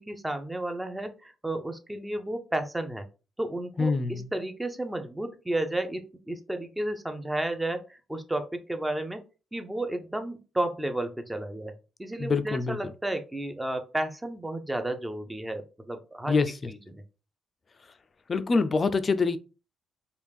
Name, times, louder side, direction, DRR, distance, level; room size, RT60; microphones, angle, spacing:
voice 1, 0.0-3.1 3.4-9.2 9.5-16.4 16.7-17.0, right 1 dB, 10° right, 0.6 m, -32 dB
voice 2, 3.8-4.3 12.2-12.8 16.3-16.5 18.3-19.4, left 4 dB, 35° left, 0.4 m, -25 dB
3.4 x 2.4 x 3.4 m
cardioid pair, 90°, 0 cm